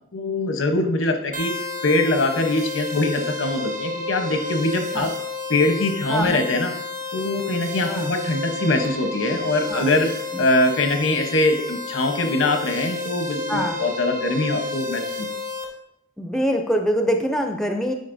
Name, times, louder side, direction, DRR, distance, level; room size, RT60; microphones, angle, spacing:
voice 1, 0.1-1.5 1.8-5.1 5.5-6.7 7.1-10.1 10.4-15.3, left 2 dB, 90° left, 5 dB, 0.9 m, -22 dB
sound 1, 1.3-15.6, left 2 dB, 45° right, 1.0 m, -31 dB
voice 2, 16.2-17.9, equal, ahead, 4 dB, 0.4 m, -24 dB
9.3 x 5.1 x 2.6 m, 0.79 s
head